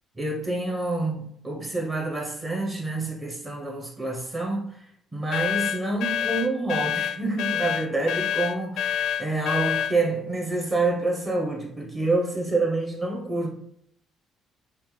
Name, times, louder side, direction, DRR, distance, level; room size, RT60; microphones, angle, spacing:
voice 1, 0.1-4.9 5.1-13.5, right 2 dB, 20° right, 1.0 m, -27 dB
sound 1, 5.3-10.0, left 9 dB, 70° left, 0.3 m, -27 dB
5.4 x 2.0 x 3.3 m
cardioid pair, 120°, 0 cm